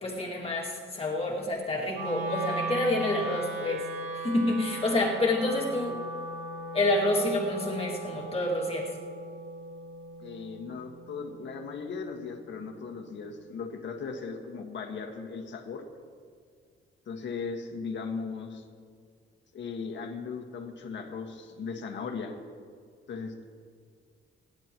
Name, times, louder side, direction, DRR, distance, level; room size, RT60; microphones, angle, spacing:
voice 1, 0.0-3.8 4.2-6.0 6.7-8.9, left 2 dB, 30° left, -2 dB, 2.2 m, -28 dB
Wind instrument woodwind instrument, 1.9-12.1, right 2 dB, 80° right, 3.2 m, -38 dB
voice 2, 10.2-15.8 17.0-18.6 19.5-22.3 23.1-23.4, left 5 dB, 65° left, 3 dB, 1.7 m, -37 dB
26.0 x 10.5 x 3.1 m, 2.1 s
cardioid pair, 130°, 21 cm